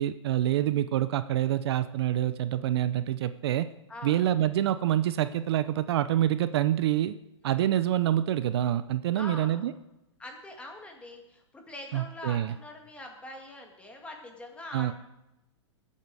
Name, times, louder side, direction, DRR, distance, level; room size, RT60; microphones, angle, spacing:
voice 1, 0.0-3.6 4.0-7.1 7.4-9.7 11.9-12.5 14.7-14.9, right 12 dB, 60° right, 13 dB, 0.6 m, -26 dB
voice 2, 3.9-4.3 7.4-7.7 9.1-9.7 10.2-14.9, left 1 dB, 10° left, 2 dB, 2.1 m, -43 dB
20.5 x 8.5 x 4.9 m, 0.93 s
hypercardioid pair, 155°, 15 cm